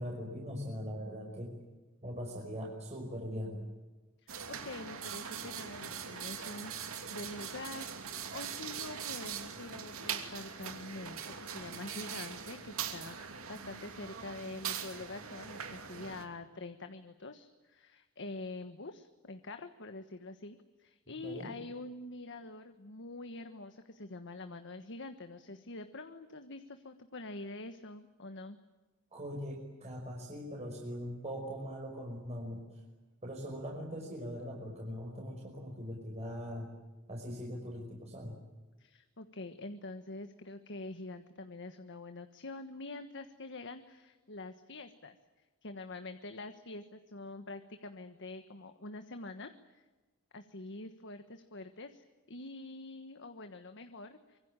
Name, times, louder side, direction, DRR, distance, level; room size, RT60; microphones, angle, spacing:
voice 1, 0.0-1.6 2.0-3.6 21.2-21.5 29.1-32.6 33.2-36.7 37.1-38.3, equal, 30° right, 0 dB, 5.5 m, -41 dB
voice 2, 4.2-28.6 38.8-45.2 45.6-49.8 50.3-54.4, left 2 dB, 60° left, 8 dB, 1.4 m, -46 dB
sound 1, 4.3-16.2, right 7 dB, 75° right, 2.8 m, -42 dB
25.5 x 23.5 x 8.9 m, 1.2 s
head